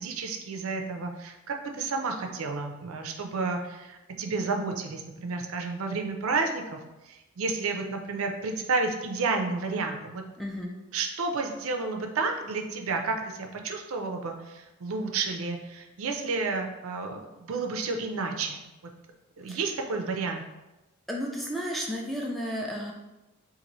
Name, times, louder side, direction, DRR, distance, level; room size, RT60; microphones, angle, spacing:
voice 1, 0.0-6.8 7.0-10.2 10.9-18.6 19.4-20.4, right 4 dB, 70° right, 4 dB, 0.4 m, -31 dB
voice 2, 10.4-10.7 19.5-19.6 21.1-22.9, equal, ahead, -2 dB, 0.4 m, -32 dB
3.0 x 2.6 x 4.0 m, 1.0 s
head